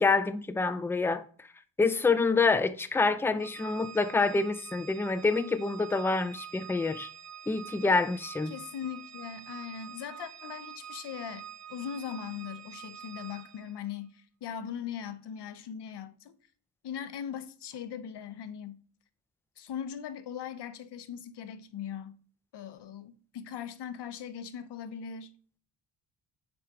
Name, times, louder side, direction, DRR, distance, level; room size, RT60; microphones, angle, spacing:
voice 1, 0.0-1.5 1.8-7.1 7.5-8.5, left 4 dB, 5° left, 0.3 m, -27 dB
Organ, 3.4-13.8, right 9 dB, 35° right, 0.6 m, -46 dB
voice 2, 8.5-16.3 16.8-18.8 19.6-22.2 22.5-25.3, left 8 dB, 60° left, 0.8 m, -40 dB
7.8 x 4.8 x 3.7 m
cardioid pair, 105°, 46 cm